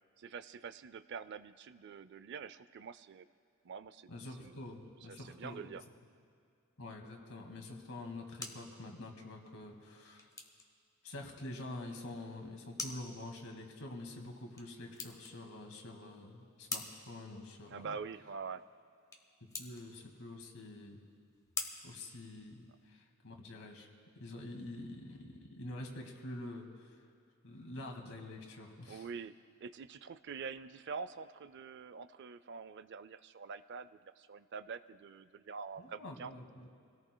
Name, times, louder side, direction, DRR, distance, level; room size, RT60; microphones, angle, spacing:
voice 1, 0.2-3.3 3.6-4.1 4.4-4.6 5.1-5.8 17.7-18.6 28.9-36.3, right 5 dB, 55° right, 14 dB, 0.4 m, -46 dB
voice 2, 4.1-5.7 6.8-10.3 11.0-18.0 19.6-21.0 21.8-23.9 24.2-27.0 27.4-29.1 35.8-36.7, left 2 dB, 75° left, 2 dB, 2.1 m, -47 dB
sound 1, 8.1-22.9, left 3 dB, 15° left, 1.2 m, -49 dB
27.5 x 17.5 x 2.3 m, 2.4 s
head